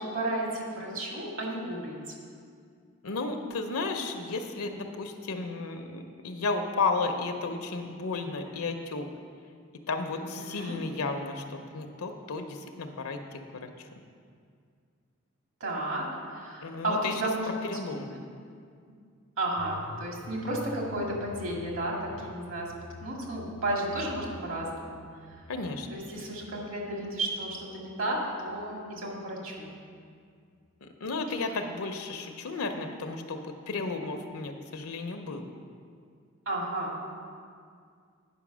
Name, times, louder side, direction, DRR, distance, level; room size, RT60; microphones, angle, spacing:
voice 1, 0.0-2.1 10.1-10.8 15.6-17.6 18.1-18.2 19.4-22.7 23.0-25.0 25.4-25.5 25.9-29.7 36.5-37.0, right 1 dB, 65° right, -2 dB, 2.1 m, -33 dB
voice 2, 3.0-9.1 9.9-13.9 16.6-17.2 17.6-18.1 25.5-26.0 30.8-35.5, left 3 dB, 85° left, 6 dB, 0.7 m, -33 dB
sound 1, 19.6-29.4 29.7-29.8, left 2 dB, 50° left, 0.4 m, -48 dB
9.3 x 5.4 x 6.1 m, 2.2 s
head